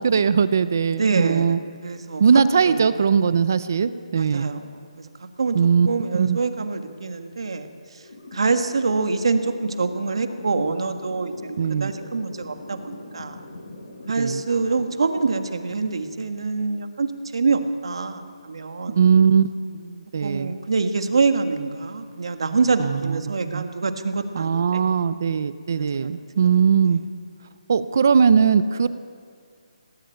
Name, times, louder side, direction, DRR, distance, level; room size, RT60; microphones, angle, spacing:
voice 1, 0.0-1.6 2.2-4.5 5.5-5.9 6.1-6.4 11.6-11.9 14.2-14.4 19.0-20.5 22.8-23.6 24.3-27.0 27.7-28.9, right 6 dB, 25° right, 15 dB, 0.5 m, -20 dB
voice 2, 1.0-1.6 1.8-2.8 4.2-4.6 5.0-5.1 5.4-5.6 5.9-7.7 8.3-13.4 14.1-19.0 20.2-24.8 25.7-26.1, right 4 dB, 50° right, 8 dB, 1.6 m, -25 dB
sound 1, 7.8-15.8, left 2 dB, 45° left, 7.1 m, -42 dB
19.0 x 18.0 x 9.1 m, 2.1 s
hypercardioid pair, 180°, 4 cm